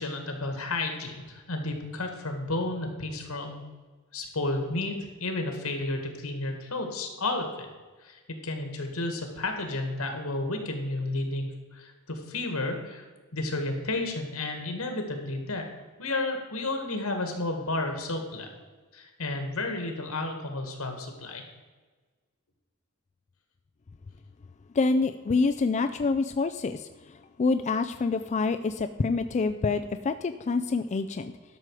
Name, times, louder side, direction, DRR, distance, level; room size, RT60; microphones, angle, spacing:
voice 1, 0.0-3.6 4.1-7.5 8.0-13.0 13.3-15.7 16.0-18.5 18.9-21.4, left 2 dB, 80° left, 5 dB, 1.9 m, -32 dB
voice 2, 24.8-26.9 27.4-31.3, left 4 dB, 35° left, 8 dB, 0.4 m, -26 dB
12.0 x 6.3 x 4.8 m, 1.4 s
head